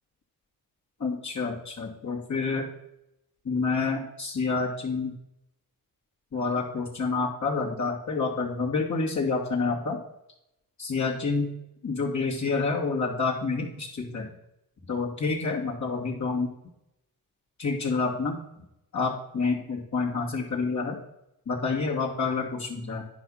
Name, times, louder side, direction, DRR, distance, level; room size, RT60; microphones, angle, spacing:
voice 1, 1.0-2.7 3.4-5.1 6.3-10.0 10.8-11.5 11.8-14.3 14.9-16.5 17.6-18.4 18.9-21.0 21.5-23.0, left 4 dB, 45° left, -3 dB, 2.4 m, -28 dB
10.5 x 4.8 x 5.7 m, 0.82 s
cardioid pair, 60°, 37 cm